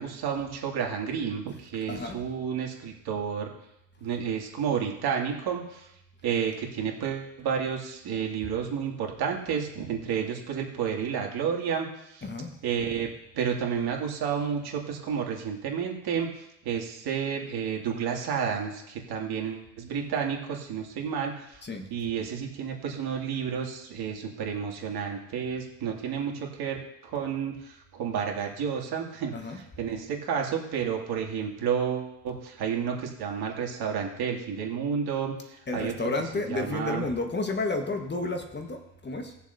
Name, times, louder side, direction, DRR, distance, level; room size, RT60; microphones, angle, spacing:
voice 1, 0.0-3.5 4.0-5.8 6.2-11.9 12.1-12.2 12.6-13.1 13.3-21.4 21.9-26.8 27.0-35.9 36.5-37.0, right 7 dB, 50° right, 1 dB, 2.5 m, -31 dB
voice 2, 1.9-2.2 12.2-12.5 21.6-21.9 29.3-29.6 35.7-39.4, left 2 dB, 20° left, 4 dB, 1.5 m, -31 dB
19.5 x 7.1 x 2.7 m, 0.82 s
hypercardioid pair, 80°, 48 cm